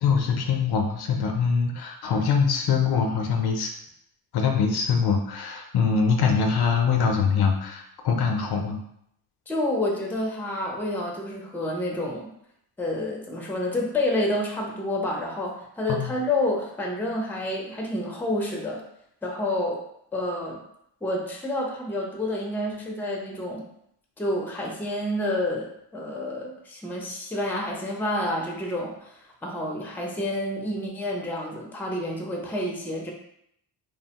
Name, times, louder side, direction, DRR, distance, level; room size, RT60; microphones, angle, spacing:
voice 1, 0.0-3.7 4.3-8.8 15.9-16.1, left 5 dB, 60° left, 3 dB, 0.5 m, -23 dB
voice 2, 9.5-12.3 12.8-18.8 19.2-19.8 20.1-20.6 21.0-23.6 24.2-33.1, left 1 dB, 5° left, -1 dB, 0.5 m, -29 dB
2.8 x 2.1 x 2.8 m, 0.73 s
cardioid pair, 105°, 45 cm